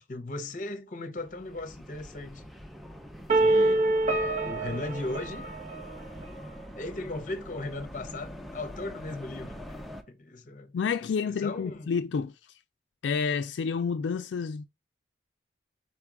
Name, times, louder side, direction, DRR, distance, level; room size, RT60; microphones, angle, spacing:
voice 1, 0.0-2.5 3.3-3.9 4.4-5.5 6.8-9.8 10.1-10.8 11.2-11.9, left 2 dB, 45° left, 0.7 m, -37 dB
sound 1, 1.2-10.0, equal, ahead, 0.5 m, -44 dB
sound 2, 3.3-6.2, right 2 dB, 35° right, 0.8 m, -26 dB
voice 2, 10.7-12.3 13.0-14.6, left 6 dB, 85° left, 0.3 m, -29 dB
4.4 x 2.3 x 4.6 m
head